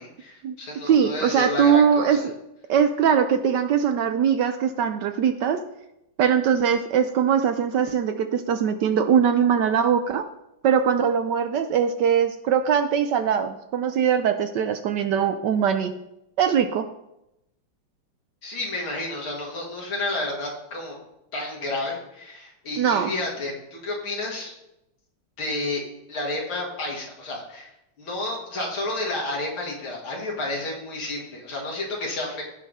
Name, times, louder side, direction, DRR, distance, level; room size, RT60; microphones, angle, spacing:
voice 1, 0.0-2.3 18.4-21.0 21.3-24.5 25.4-25.8 26.1-27.7 28.0-32.4, left 2 dB, 80° left, -2 dB, 3.0 m, -31 dB
voice 2, 0.9-2.3 2.7-5.6 6.2-10.2 10.6-15.9 16.4-16.9 22.8-23.1, right 7 dB, 70° right, 8 dB, 1.1 m, -21 dB
16.5 x 5.5 x 3.6 m, 0.86 s
omnidirectional pair, 2.2 m